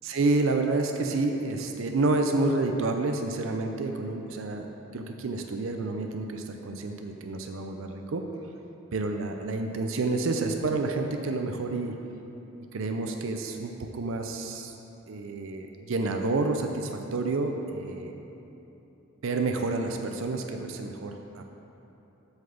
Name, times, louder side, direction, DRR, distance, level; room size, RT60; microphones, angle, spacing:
voice 1, 0.1-4.7 4.9-8.2 8.9-11.9 12.7-14.7 15.1-18.2 19.2-21.4, right 3 dB, 70° right, 4 dB, 0.5 m, -29 dB
7.8 x 4.0 x 6.9 m, 3.0 s
head